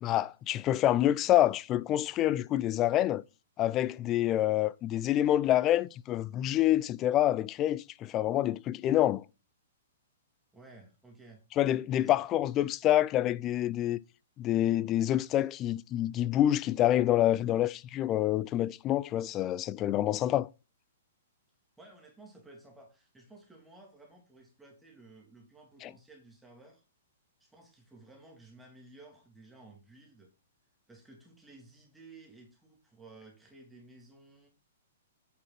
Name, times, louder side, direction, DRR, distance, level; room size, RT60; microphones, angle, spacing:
voice 1, 0.0-3.2 3.6-9.2 11.6-14.0 14.4-20.5 25.8-25.9, left 13 dB, 30° left, 0.5 m, -27 dB
voice 2, 10.5-11.4 12.0-12.2 19.2-19.3 21.8-26.8 27.4-30.3 30.9-34.5, right 2 dB, 5° right, 2.9 m, -55 dB
9.3 x 6.3 x 4.3 m
figure-of-eight pair, 115°, 0 cm